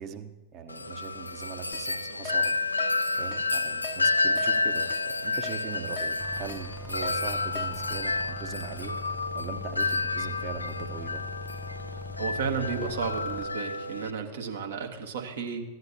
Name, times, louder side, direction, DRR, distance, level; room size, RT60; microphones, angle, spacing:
voice 1, 0.0-2.6 3.2-8.9 9.3-11.2, right 7 dB, 35° right, 8 dB, 1.0 m, -40 dB
Wind chime, 0.7-14.1, left 3 dB, 80° left, 0.4 m, -30 dB
Keyboard (musical), 1.7-1.9 2.3-2.4 2.8-2.9 3.3-3.4 3.8-4.0 4.4-4.5 4.9-5.0 5.4-5.6 6.0-6.1 6.5-6.6 7.0-7.2 7.6-7.7, left 4 dB, 40° left, 0.6 m, -40 dB
sound 1, 6.2-13.5, left 2 dB, ahead, 0.6 m, -41 dB
voice 2, 12.2-15.6, right 5 dB, 60° right, 3 dB, 1.3 m, -33 dB
15.5 x 9.7 x 2.8 m, 1.1 s
figure-of-eight pair, 90°, 0 cm